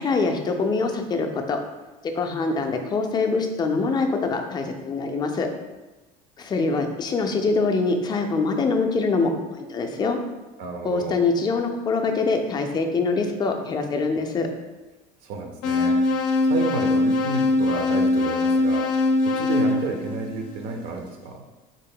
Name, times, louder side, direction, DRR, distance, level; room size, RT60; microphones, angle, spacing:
voice 1, 0.0-1.6 2.1-5.5 6.4-10.2 10.8-14.5, left 4 dB, 25° left, 4 dB, 0.4 m, -24 dB
voice 2, 10.6-11.2 15.2-16.0 16.4-18.9 19.3-21.5, right 4 dB, 60° right, 3 dB, 0.5 m, -31 dB
sound 1, 15.6-20.8, left 2 dB, 85° left, 0.5 m, -22 dB
3.6 x 2.1 x 3.7 m, 1.1 s
supercardioid pair, 125°, 19 cm